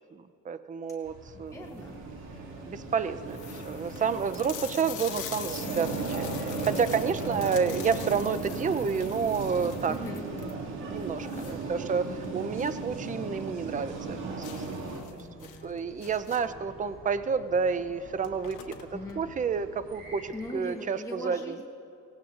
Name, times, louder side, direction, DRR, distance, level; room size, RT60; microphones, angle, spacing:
voice 1, 0.1-1.7 2.6-10.0 10.9-14.2 14.6-14.8 15.4-21.4, right 6 dB, 25° right, 12 dB, 0.5 m, -30 dB
voice 2, 1.0-2.0 3.8-4.0 9.9-10.3 14.8-16.2 16.4-16.7 18.9-19.2 20.3-21.6, left 1 dB, 10° left, 0 dB, 1.1 m, -42 dB
sound 1, 1.0-20.5, right 1 dB, 65° right, 4.2 m, -50 dB
sound 2, 1.5-1.9 2.6-2.7 2.9-3.0 3.3-12.9 13.2-13.3 13.7-13.8 14.4-16.7 17.6-17.7 18.0-19.2, left 10 dB, 90° left, 1.2 m, -44 dB
sound 3, 1.8-15.0, right 3 dB, 80° right, 2.3 m, -36 dB
23.5 x 18.0 x 2.5 m, 2.6 s
cardioid pair, 90°, 30 cm